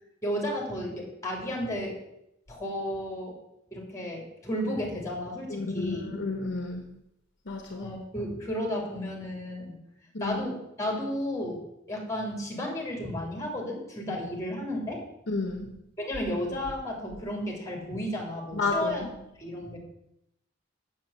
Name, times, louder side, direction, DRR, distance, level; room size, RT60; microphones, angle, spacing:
voice 1, 0.2-1.9 2.5-3.3 3.7-6.0 7.8-9.8 10.2-15.0 16.0-19.1 19.4-19.8, left 1 dB, 15° left, 0 dB, 3.2 m, -33 dB
voice 2, 5.5-6.9 7.5-7.9 10.1-10.4 14.1-14.2 15.3-15.7 18.5-19.1, left 3 dB, 60° left, 4 dB, 1.3 m, -31 dB
7.4 x 7.3 x 7.3 m, 0.81 s
head